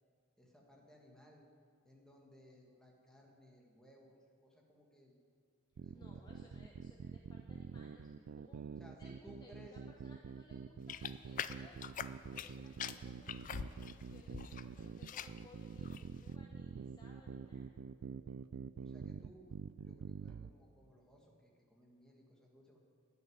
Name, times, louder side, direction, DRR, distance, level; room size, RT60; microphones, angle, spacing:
voice 1, 0.4-1.5 1.8-5.2 5.7-6.5 7.7-8.1 8.8-9.8 18.8-19.4 19.8-22.8, equal, 5° left, -1 dB, 1.7 m, -61 dB
sound 1, 5.8-20.5, right 6 dB, 80° right, 0.4 m, -47 dB
voice 2, 5.9-17.7, left 1 dB, 20° left, -1 dB, 0.9 m, -63 dB
sound 2, 10.6-17.4, left 1 dB, 75° left, 1.0 m, -65 dB
sound 3, 10.9-12.5 12.8-14.6 14.9-15.4 15.8-16.2, left 8 dB, 40° left, 0.3 m, -43 dB
12.0 x 6.5 x 9.3 m, 2.2 s
head